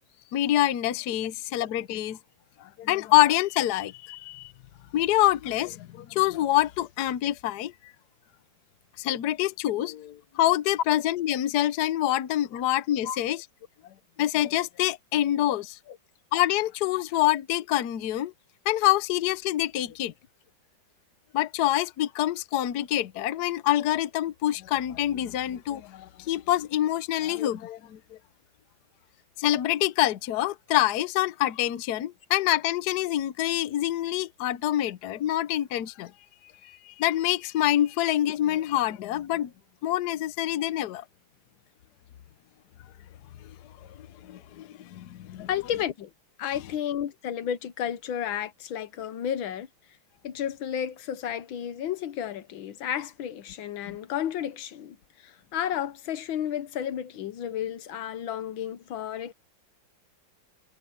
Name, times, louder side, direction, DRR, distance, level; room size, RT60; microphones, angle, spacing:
voice 1, 0.3-2.2 2.6-4.5 4.9-7.7 9.0-13.4 14.2-15.8 16.3-18.3 18.6-20.1 21.3-28.2 29.4-36.1 36.6-39.5 39.8-41.0 44.2-45.5 53.9-54.0, left 14 dB, 60° left, 1.2 m, -26 dB
voice 2, 45.5-46.1 46.4-49.7 50.2-59.3, left 9 dB, 80° left, 1.7 m, -32 dB
omnidirectional pair, 2.2 m